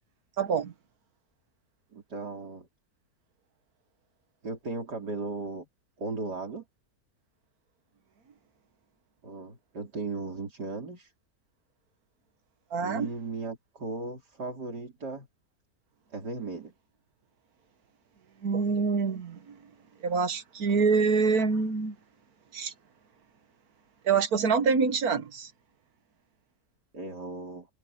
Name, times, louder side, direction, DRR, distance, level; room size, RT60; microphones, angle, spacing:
voice 1, 0.4-0.7 12.7-13.1 18.4-19.5 20.0-22.0 22.5-22.7 24.1-25.5, right 5 dB, 65° right, 1.8 m, -26 dB
voice 2, 1.9-2.7 4.4-5.7 6.0-6.6 9.2-11.1 12.8-15.3 16.1-16.7 26.9-27.7, right 3 dB, 85° right, 5.1 m, -36 dB
open air
omnidirectional pair, 1.7 m